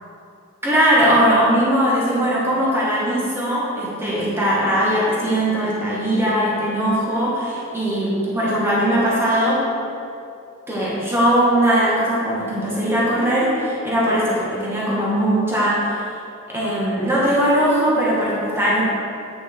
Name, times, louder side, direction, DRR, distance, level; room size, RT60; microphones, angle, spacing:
voice 1, 0.6-9.7 10.7-16.0 16.5-18.8, equal, 10° right, -7 dB, 1.6 m, -20 dB
8.6 x 5.5 x 3.8 m, 2.5 s
head